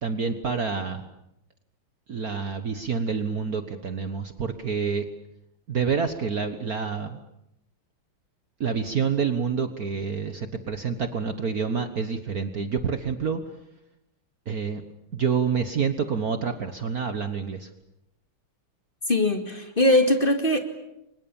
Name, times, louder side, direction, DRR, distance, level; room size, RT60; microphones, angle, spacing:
voice 1, 0.0-1.0 2.1-5.1 5.7-7.2 8.6-13.4 14.5-14.8 15.1-17.7, right 6 dB, 50° right, 9 dB, 1.6 m, -27 dB
voice 2, 19.1-20.6, left 1 dB, 25° left, 6 dB, 2.4 m, -21 dB
30.0 x 25.0 x 7.1 m, 0.84 s
omnidirectional pair, 2.4 m